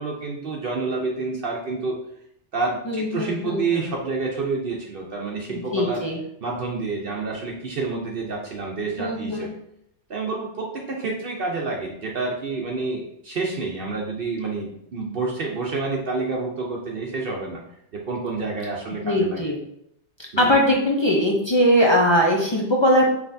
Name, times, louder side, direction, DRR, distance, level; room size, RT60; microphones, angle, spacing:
voice 1, 0.0-2.0 2.5-6.0 6.4-9.5 10.1-17.6 17.9-19.5 20.3-20.5, right 3 dB, 55° right, -1 dB, 0.8 m, -28 dB
voice 2, 2.9-3.9 5.5-6.2 9.0-9.5 19.0-19.6 20.4-23.0, equal, 35° left, -1 dB, 0.4 m, -20 dB
5.7 x 3.1 x 2.6 m, 0.75 s
omnidirectional pair, 1.2 m